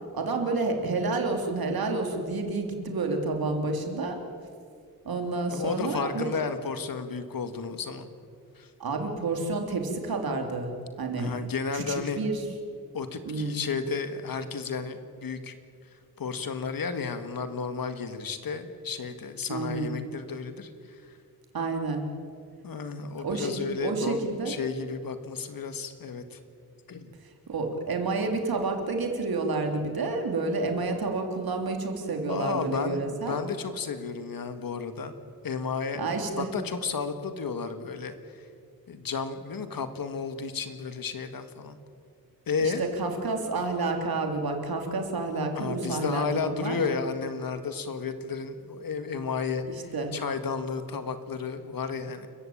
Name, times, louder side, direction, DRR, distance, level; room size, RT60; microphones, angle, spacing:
voice 1, 0.1-4.2 5.0-6.3 8.8-10.7 11.0-11.3 11.7-12.4 13.2-13.6 19.5-19.9 21.5-22.0 23.2-24.5 27.5-33.4 35.9-36.5 42.6-46.8 49.6-50.1, right 3 dB, 75° right, 3 dB, 3.3 m, -29 dB
voice 2, 5.5-8.1 8.6-8.7 11.2-12.2 12.9-15.6 15.9-21.2 22.6-26.4 26.9-27.1 32.3-35.1 35.4-36.0 36.4-38.5 38.9-41.8 42.5-42.8 45.5-52.3, left 5 dB, 70° left, 9 dB, 1.8 m, -33 dB
29.5 x 15.0 x 8.7 m, 2.3 s
wide cardioid pair, 170°, 36 cm